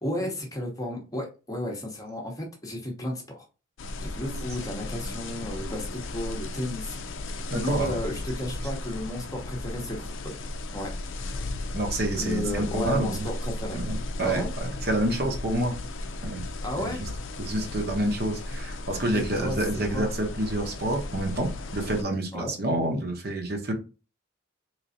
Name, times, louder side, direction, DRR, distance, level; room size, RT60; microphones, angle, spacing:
voice 1, 0.0-3.4 4.0-10.3 10.7-11.5 12.1-13.8 14.2-14.5 16.6-17.0 19.1-20.1 22.3-22.5, left 1 dB, 15° left, 1 dB, 0.8 m, -33 dB
sound 1, 3.8-22.0, left 2 dB, 65° left, 0.5 m, -35 dB
voice 2, 7.5-7.9 11.7-13.2 13.7-15.7 16.2-16.4 16.8-17.1 17.4-23.7, right 1 dB, 50° right, 3 dB, 0.9 m, -28 dB
3.8 x 3.2 x 2.6 m, 0.32 s
head